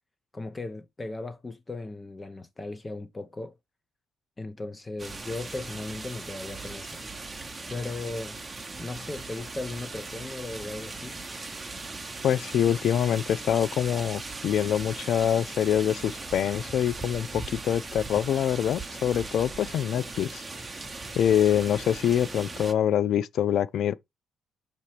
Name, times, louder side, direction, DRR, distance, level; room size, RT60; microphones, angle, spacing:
voice 1, 0.3-3.5 4.4-7.0 7.7-8.4 8.8-11.2, left 2 dB, 20° left, 0.8 m, -37 dB
sound 1, 5.0-22.7, right 3 dB, 20° right, 0.8 m, -39 dB
voice 2, 12.2-20.4 21.2-23.9, left 9 dB, 70° left, 0.4 m, -25 dB
6.7 x 3.0 x 4.9 m
cardioid pair, 90°, 0 cm